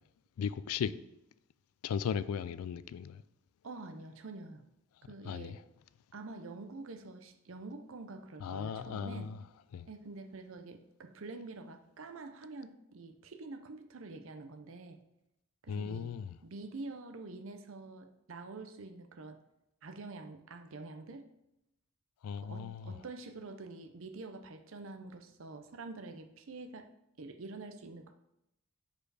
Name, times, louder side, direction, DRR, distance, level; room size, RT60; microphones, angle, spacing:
voice 1, 0.4-0.9 1.8-3.2 5.3-5.6 8.4-9.4 9.7-9.9 15.7-16.4 22.2-22.9, left 7 dB, 85° left, 0.3 m, -36 dB
voice 2, 3.6-4.6 5.1-5.6 6.1-9.3 9.9-15.0 15.6-16.1 16.4-19.4 19.8-21.3 22.4-26.9 27.2-28.1, right 3 dB, 65° right, 0.6 m, -46 dB
5.2 x 4.3 x 4.7 m
head